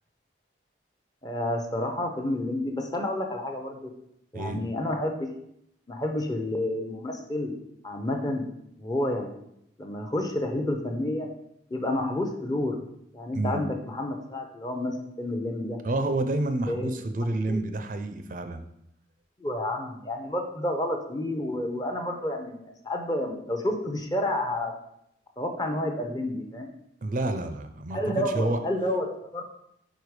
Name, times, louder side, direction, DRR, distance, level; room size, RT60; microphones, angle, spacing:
voice 1, 1.2-3.9 4.3-5.3 5.9-7.5 7.8-8.5 8.8-9.3 9.8-11.3 11.7-12.8 13.1-15.8 16.7-16.9 17.5-17.6 19.4-24.7 25.4-26.7 27.9-29.4, left 1 dB, 20° left, 4 dB, 0.6 m, -30 dB
voice 2, 15.8-18.6 27.0-28.6, right 2 dB, 45° right, 8 dB, 0.4 m, -29 dB
5.0 x 4.4 x 4.7 m, 0.77 s
head